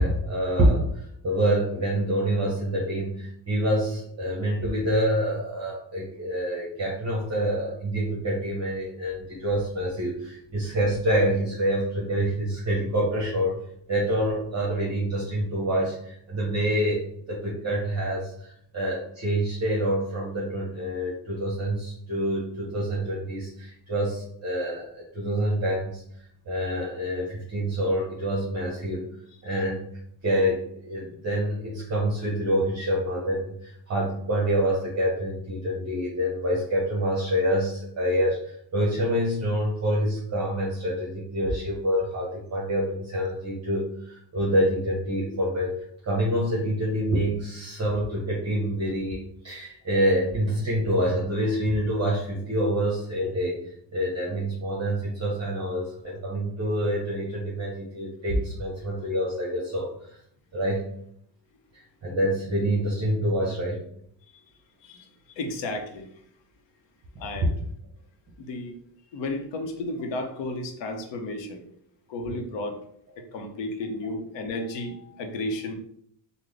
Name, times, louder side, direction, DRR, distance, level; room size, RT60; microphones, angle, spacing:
voice 1, 0.0-13.6 13.9-26.0 26.5-29.1 29.4-29.8 30.2-60.2 60.5-60.9 61.7-63.8, equal, 30° right, -4 dB, 0.9 m, -27 dB
voice 2, 64.8-66.1 67.2-67.5 68.4-68.8 69.1-71.6 72.1-72.8 73.2-75.8, left 2 dB, 65° left, 4 dB, 0.8 m, -33 dB
3.8 x 2.2 x 3.3 m, 0.67 s
cardioid pair, 140°, 48 cm